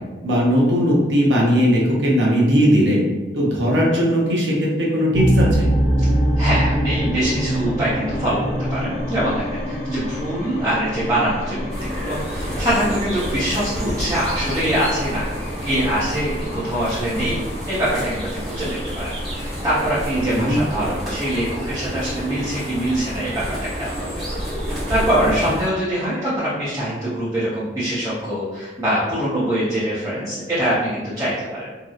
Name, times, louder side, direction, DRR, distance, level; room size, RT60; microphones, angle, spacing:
voice 1, 0.2-3.0 3.3-5.6 20.3-20.6, equal, 90° right, -4 dB, 0.6 m, -18 dB
sound 1, 5.1-20.9, equal, 40° left, 0.4 m, -25 dB
voice 2, 6.4-8.4 8.7-15.3 15.6-17.4 17.7-23.4 23.7-24.2 24.7-31.3, right 1 dB, 20° right, -12 dB, 0.6 m, -23 dB
sound 2, 11.7-25.7, equal, ahead, 1.0 m, -29 dB
2.7 x 2.0 x 2.3 m, 1.3 s
head